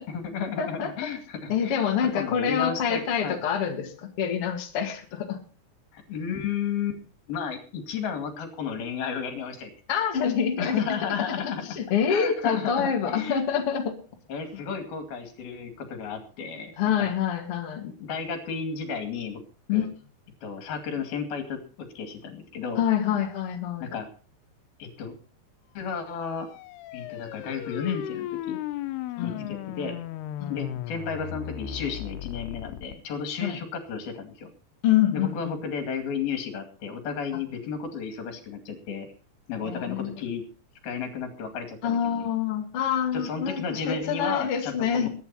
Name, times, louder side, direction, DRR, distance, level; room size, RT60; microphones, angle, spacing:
voice 1, 0.0-1.8 2.2-3.4 5.9-7.0 7.3-9.7 10.6-11.8 12.1-13.4 14.3-17.1 17.8-19.4 19.7-19.9 20.4-22.8 23.8-24.1 24.8-25.1 25.8-26.5 26.9-28.6 29.2-30.0 30.5-34.5 35.1-39.1 39.5-40.4 40.8-42.3 43.1-45.1, left 6 dB, 70° left, 6 dB, 4.1 m, -33 dB
voice 2, 0.6-0.9 1.5-5.4 9.9-10.8 11.2-13.9 16.8-17.9 19.7-19.9 22.8-24.0 29.2-29.5 30.4-30.8 33.4-33.6 34.8-35.6 39.6-40.1 41.8-45.1, left 8 dB, 40° left, 2 dB, 2.7 m, -26 dB
sound 1, 26.0-33.0, left 12 dB, 90° left, 2.9 m, -36 dB
23.0 x 9.6 x 4.1 m, 0.39 s
omnidirectional pair, 4.5 m